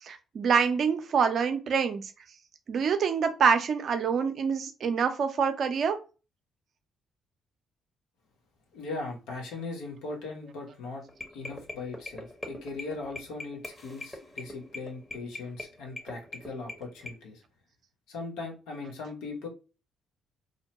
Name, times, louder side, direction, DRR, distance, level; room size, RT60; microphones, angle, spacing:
voice 1, 0.1-2.0 2.7-6.0, right 6 dB, 55° right, 7 dB, 0.5 m, -26 dB
voice 2, 8.7-11.0 11.3-17.4 18.1-19.5, left 3 dB, 75° left, 1 dB, 0.8 m, -39 dB
sound 1, 11.1-17.1, left 2 dB, 20° left, 1.0 m, -42 dB
2.6 x 2.1 x 2.8 m, 0.32 s
hypercardioid pair, 50°, 0 cm